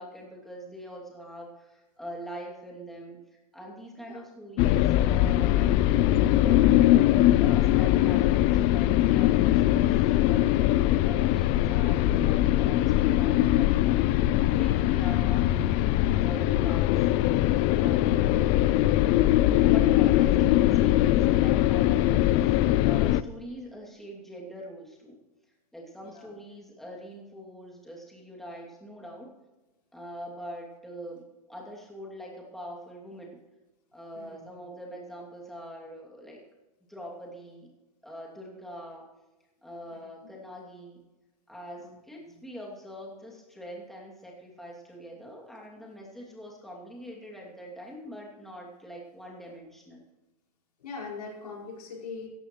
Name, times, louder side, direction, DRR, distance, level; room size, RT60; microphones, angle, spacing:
voice 1, 0.0-3.2 3.5-13.7 14.1-17.0 17.7-18.8 19.6-25.2 25.7-29.3 29.9-33.4 33.9-36.4 36.9-37.7 38.0-39.1 39.6-41.0 41.5-50.0, equal, ahead, -3 dB, 2.7 m, -43 dB
voice 2, 3.9-4.2 16.2-16.5 26.0-26.3 34.1-34.5 39.9-40.0 41.8-42.3 50.8-52.3, left 4 dB, 80° left, -1 dB, 4.8 m, -42 dB
sound 1, 4.6-23.2, left 14 dB, 30° left, 0.4 m, -22 dB
16.5 x 14.5 x 3.2 m, 1.1 s
hypercardioid pair, 140°, 20 cm